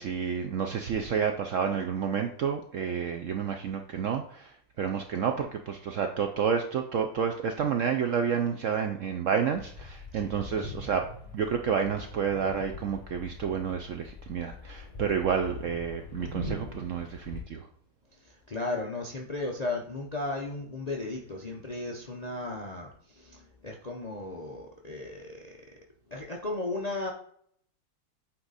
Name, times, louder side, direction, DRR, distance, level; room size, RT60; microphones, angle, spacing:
voice 1, 0.0-11.1 11.3-17.7, right 7 dB, 70° right, 5 dB, 0.7 m, -30 dB
sound 1, 9.5-17.4, left 2 dB, 20° left, 1.2 m, -42 dB
voice 2, 18.1-25.6 26.1-27.1, left 2 dB, 40° left, 0 dB, 0.5 m, -35 dB
8.6 x 3.8 x 4.0 m, 0.63 s
omnidirectional pair, 1.9 m